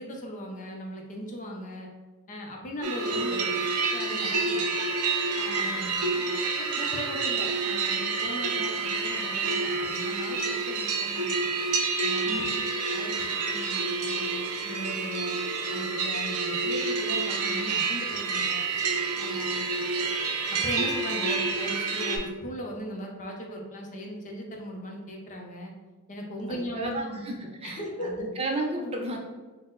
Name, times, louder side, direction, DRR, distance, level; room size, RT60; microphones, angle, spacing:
voice 1, 0.0-1.9 2.3-3.4 3.9-4.6 5.3-11.3 12.0-12.4 12.9-15.4 15.7-18.7 19.2-19.7 20.5-25.7 26.1-27.2 27.6-28.3, equal, 35° left, 1 dB, 0.5 m, -38 dB
sound 1, 2.8-22.2, right 4 dB, 80° right, 0.5 m, -28 dB
voice 2, 3.1-3.6 5.5-6.2 12.2-12.7 19.9-20.2 26.5-27.3 27.6-29.2, right 2 dB, 25° right, 0 dB, 0.5 m, -34 dB
4.2 x 2.1 x 3.7 m, 1.2 s
head